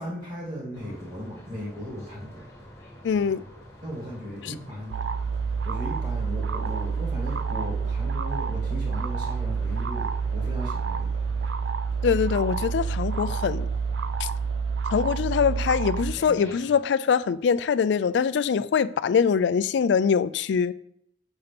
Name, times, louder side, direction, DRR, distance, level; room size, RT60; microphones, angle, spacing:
voice 1, 0.0-2.5 3.8-5.1 5.6-11.2, equal, 40° right, 2.0 m, -37 dB
sound 1, 0.7-16.8, equal, 15° left, 1.3 m, -47 dB
voice 2, 3.0-3.4 12.0-13.7 14.2-14.3 14.9-20.7, left 6 dB, 70° left, 0.3 m, -23 dB
sound 2, 4.9-16.1, right 5 dB, 75° right, 0.4 m, -28 dB
6.8 x 5.7 x 3.4 m
head